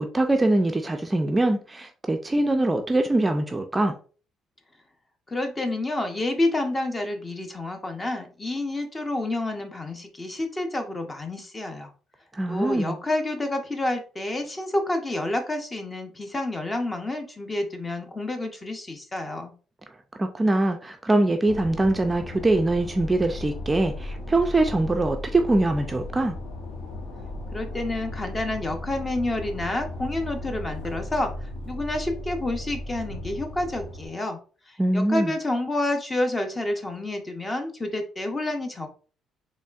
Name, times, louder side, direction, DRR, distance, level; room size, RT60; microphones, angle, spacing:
voice 1, 0.0-3.9 12.3-13.0 20.2-26.3 34.8-35.3, right 2 dB, 20° right, 5 dB, 0.4 m, -23 dB
voice 2, 5.3-11.9 12.5-19.5 27.5-34.4 34.7-38.9, left 2 dB, 20° left, 5 dB, 0.7 m, -29 dB
sound 1, 21.5-34.1, left 1 dB, 85° left, 0.9 m, -36 dB
4.1 x 3.1 x 2.4 m, 0.38 s
cardioid pair, 105°, 0 cm